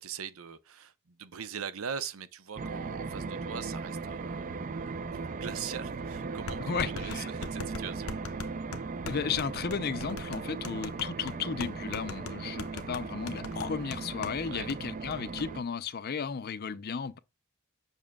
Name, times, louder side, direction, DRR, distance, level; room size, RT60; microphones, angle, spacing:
voice 1, 0.0-8.2 14.5-14.7, right 7 dB, 85° right, 0.6 m, -41 dB
sound 1, 2.6-15.6, right 4 dB, 40° right, 0.4 m, -38 dB
sound 2, 5.5-5.6 6.5-14.4 14.7-14.8 15.1-15.5, left 4 dB, 90° left, 0.7 m, -41 dB
voice 2, 6.7-7.3 9.1-17.2, left 6 dB, 45° left, 0.5 m, -34 dB
7.2 x 5.9 x 2.2 m
head